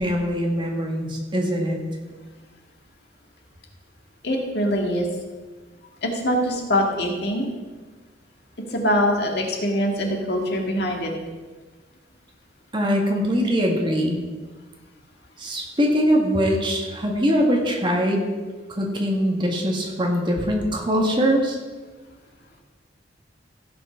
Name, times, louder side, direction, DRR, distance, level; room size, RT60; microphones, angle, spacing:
voice 1, 0.0-1.8 12.7-14.2 15.4-18.3 18.8-21.6, equal, 25° right, 0 dB, 1.9 m, -22 dB
voice 2, 4.2-5.1 6.0-7.5 8.7-11.1, equal, 60° left, 0 dB, 2.1 m, -23 dB
15.5 x 6.1 x 5.9 m, 1.3 s
head